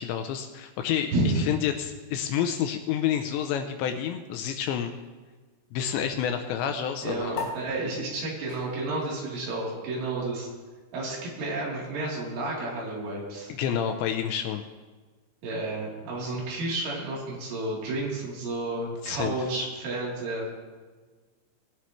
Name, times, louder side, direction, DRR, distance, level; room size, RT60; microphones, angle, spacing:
voice 1, 0.0-4.9 5.7-7.4 13.5-14.6 19.0-19.4, left 9 dB, 85° left, 6 dB, 2.7 m, -29 dB
voice 2, 1.1-1.5 7.0-10.5 10.9-13.5 15.4-20.5, right 2 dB, 75° right, -5 dB, 5.9 m, -31 dB
sound 1, 7.3-14.1, left 4 dB, 65° left, 4.7 m, -44 dB
20.0 x 11.5 x 3.2 m, 1.4 s
omnidirectional pair, 5.6 m